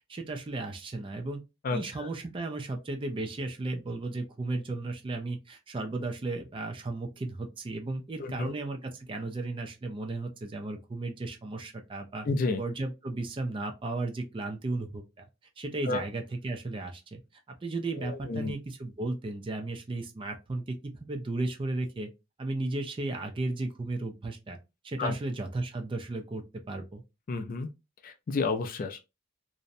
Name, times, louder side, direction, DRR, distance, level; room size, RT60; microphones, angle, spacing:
voice 1, 0.1-1.4 1.7-12.3 12.6-15.2 15.6-17.2 17.5-22.1 22.4-24.6 24.8-27.0, right 2 dB, 25° right, 0.4 m, -35 dB
voice 2, 1.6-2.1 8.2-8.5 12.3-12.6 15.9-16.0 17.9-18.5 25.0-25.1 27.3-27.7 28.0-29.0, left 3 dB, 45° left, 0.4 m, -31 dB
2.6 x 2.1 x 2.5 m
head